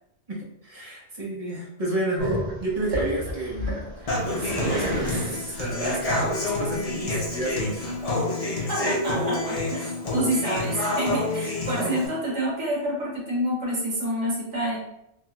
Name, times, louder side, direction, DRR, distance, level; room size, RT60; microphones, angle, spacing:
voice 1, 0.3-7.8 8.4-8.7 11.6-12.0, right 2 dB, 35° right, -3 dB, 0.7 m, -31 dB
Growling, 2.2-8.0, equal, 60° right, 1.3 m, -31 dB
Human voice / Acoustic guitar, 4.1-12.1, left 2 dB, 40° left, 0.7 m, -28 dB
voice 2, 8.7-14.8, right 1 dB, 85° right, -5 dB, 1.6 m, -28 dB
3.3 x 2.9 x 2.3 m, 0.81 s
omnidirectional pair, 1.2 m